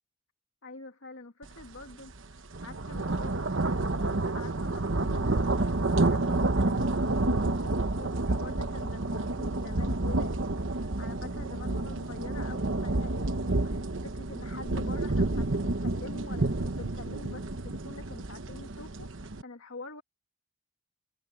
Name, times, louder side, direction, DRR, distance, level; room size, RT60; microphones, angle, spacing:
voice 1, 0.6-20.0, left 3 dB, 85° left, 1.8 m, -46 dB
sound 1, 1.6-1.8 2.2-19.4, right 2 dB, 70° right, 1.1 m, -29 dB
head